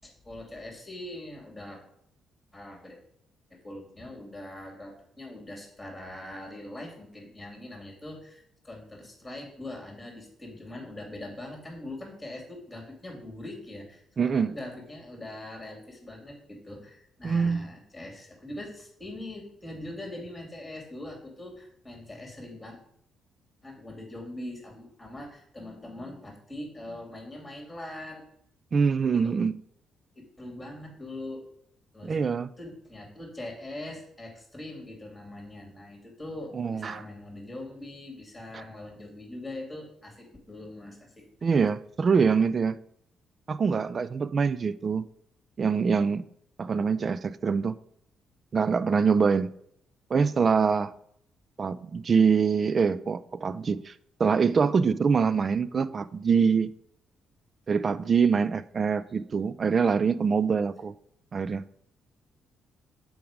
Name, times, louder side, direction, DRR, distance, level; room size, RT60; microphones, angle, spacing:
voice 1, 0.0-1.8 2.5-3.0 3.6-22.7 23.6-28.2 29.1-29.3 30.1-31.4 31.9-32.2 32.6-41.2, left 1 dB, 10° left, 2.7 m, -42 dB
voice 2, 14.2-14.6 17.2-17.6 28.7-29.5 32.0-32.5 36.5-37.0 38.5-38.6 41.4-42.8 43.5-45.1 45.6-46.3 46.6-47.7 48.5-49.5 50.1-50.9 51.6-53.9 54.2-56.7 57.7-60.9 61.3-61.6, right 5 dB, 40° right, 0.3 m, -24 dB
7.0 x 4.8 x 5.1 m
cardioid pair, 90°, 0 cm